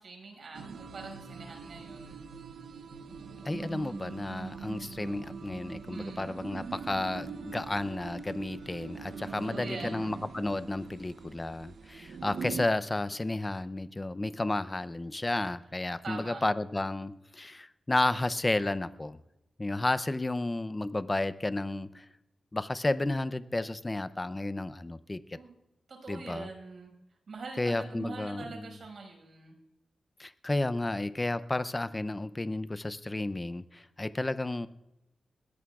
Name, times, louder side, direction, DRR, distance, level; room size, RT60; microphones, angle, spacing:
voice 1, 0.0-2.2 5.9-6.5 9.3-10.2 16.0-16.4 25.3-25.5 25.9-26.9 27.3-29.6, right 3 dB, 60° right, 2 dB, 5.5 m, -44 dB
sound 1, 0.5-12.7, right 5 dB, 85° right, 0.9 m, -42 dB
voice 2, 3.4-19.2 19.6-22.0 22.5-25.4 26.1-26.5 27.6-28.8 30.2-34.7, left 2 dB, 20° left, 14 dB, 0.5 m, -32 dB
21.5 x 17.0 x 2.4 m, 0.93 s
wide cardioid pair, 135°, 0 cm